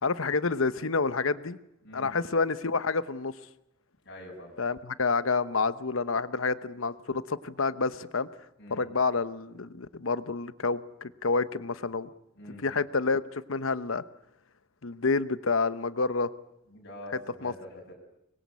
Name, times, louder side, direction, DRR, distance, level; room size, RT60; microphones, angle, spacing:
voice 1, 0.0-1.6 1.9-3.3 4.6-8.3 8.7-12.1 12.6-14.0 14.8-16.3 17.4-17.5, left 4 dB, 75° left, 14 dB, 1.0 m, -28 dB
voice 2, 1.8-2.1 4.0-4.6 8.6-8.9 12.4-12.7 16.7-17.9, left 1 dB, 55° left, -2 dB, 6.7 m, -45 dB
25.0 x 22.0 x 8.4 m, 0.80 s
head